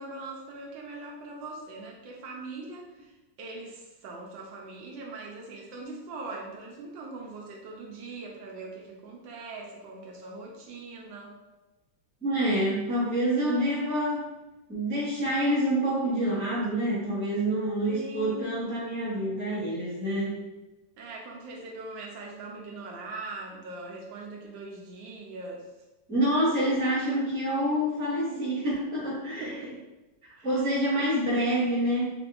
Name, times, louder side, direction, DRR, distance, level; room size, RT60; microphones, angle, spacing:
voice 1, 0.0-11.4 13.5-13.7 17.9-18.6 21.0-25.6 28.3-28.6 29.4-29.8 30.4-30.7, right 2 dB, 75° right, -1 dB, 1.3 m, -41 dB
voice 2, 12.2-14.3 14.7-20.4 26.1-29.5 30.4-32.1, right 1 dB, 10° left, -8 dB, 0.5 m, -27 dB
3.9 x 3.4 x 2.4 m, 1.1 s
omnidirectional pair, 2.2 m